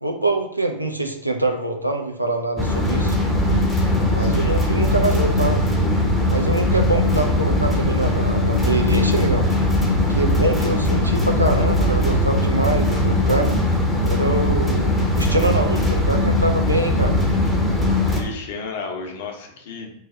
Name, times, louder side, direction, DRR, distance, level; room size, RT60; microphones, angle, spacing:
voice 1, 0.0-3.2 4.1-5.6 6.3-9.5 10.1-13.5 14.0-17.2, right 2 dB, 85° right, 4 dB, 0.4 m, -24 dB
sound 1, 2.6-18.2, left 1 dB, 5° left, 0.7 m, -20 dB
voice 2, 4.2-4.6 18.1-19.9, left 4 dB, 55° left, 3 dB, 0.6 m, -33 dB
3.2 x 2.3 x 3.7 m, 0.79 s
figure-of-eight pair, 90°, 0 cm